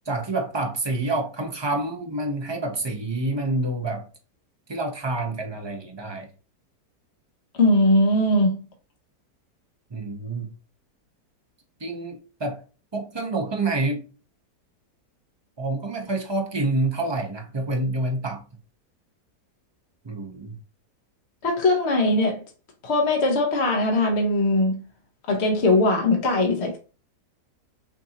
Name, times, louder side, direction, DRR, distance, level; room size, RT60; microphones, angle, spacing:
voice 1, 0.1-4.0 4.7-6.3 9.9-10.5 11.8-12.6 12.9-14.0 15.6-18.4 20.0-20.5, right 2 dB, 30° right, 0.5 m, -27 dB
voice 2, 7.6-8.7 21.4-22.4 22.8-24.8 25.3-26.8, left 2 dB, 45° left, 1.3 m, -20 dB
6.2 x 2.7 x 2.8 m
omnidirectional pair, 1.8 m